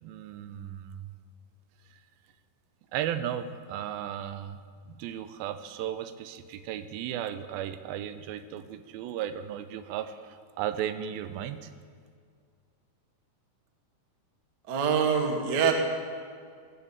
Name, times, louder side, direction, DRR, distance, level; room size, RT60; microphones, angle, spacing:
voice 1, 0.0-1.1 2.9-4.6 4.9-11.7, right 10 dB, 85° right, 11 dB, 2.5 m, -35 dB
voice 2, 14.7-15.7, right 6 dB, 70° right, 3 dB, 1.0 m, -24 dB
18.0 x 6.9 x 7.4 m, 2.1 s
omnidirectional pair, 4.2 m